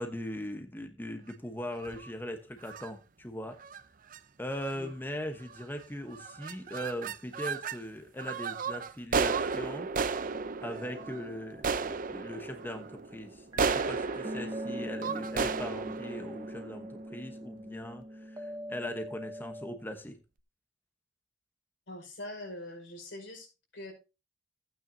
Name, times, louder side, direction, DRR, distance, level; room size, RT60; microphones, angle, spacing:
voice 1, 0.0-3.6 4.4-9.9 10.6-20.2, equal, 10° left, 6 dB, 1.0 m, -40 dB
sound 1, 1.7-2.1 2.6-2.9 3.6-3.8 4.1-4.2 4.5-4.9 5.5-5.8 6.1-7.8 8.2-17.4, right 5 dB, 50° right, 0.6 m, -34 dB
sound 2, 10.3-13.0 13.5-19.8, equal, 20° right, 1.1 m, -43 dB
voice 2, 21.9-23.5 23.7-23.9, left 1 dB, 85° left, 1 dB, 5.2 m, -43 dB
15.0 x 9.1 x 2.7 m, 0.28 s
head